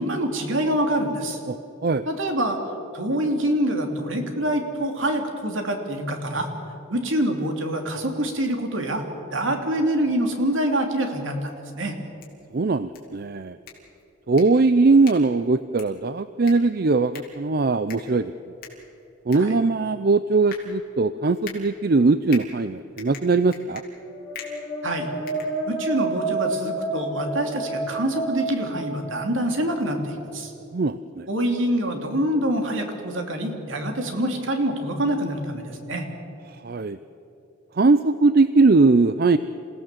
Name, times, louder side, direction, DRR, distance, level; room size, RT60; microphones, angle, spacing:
voice 1, 0.0-1.4 2.1-2.6 2.9-6.5 6.9-9.0 9.3-12.0 19.3-19.6 24.8-25.1 25.6-30.5 31.3-36.1, right 1 dB, 70° right, 4 dB, 2.8 m, -25 dB
sound 1, 12.0-26.1, left 6 dB, 45° left, 3.8 m, -46 dB
voice 2, 12.5-13.6 14.3-18.3 19.3-23.8 30.7-31.3 36.6-37.0 37.8-39.4, right 3 dB, 45° right, 13 dB, 0.5 m, -20 dB
sound 2, 24.0-29.8, right 2 dB, ahead, 4.7 m, -30 dB
28.0 x 16.5 x 7.5 m, 3.0 s
head